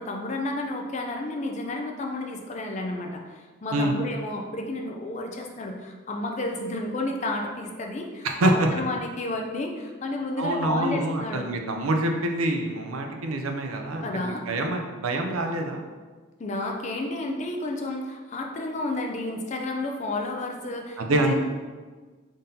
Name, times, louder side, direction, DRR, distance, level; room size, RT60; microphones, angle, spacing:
voice 1, 0.0-11.5 14.0-14.4 16.4-21.4, left 2 dB, 35° left, 2 dB, 0.4 m, -31 dB
voice 2, 8.2-8.7 10.4-15.8 21.0-21.4, right 1 dB, 90° right, 3 dB, 0.5 m, -26 dB
3.7 x 2.7 x 3.8 m, 1.4 s
head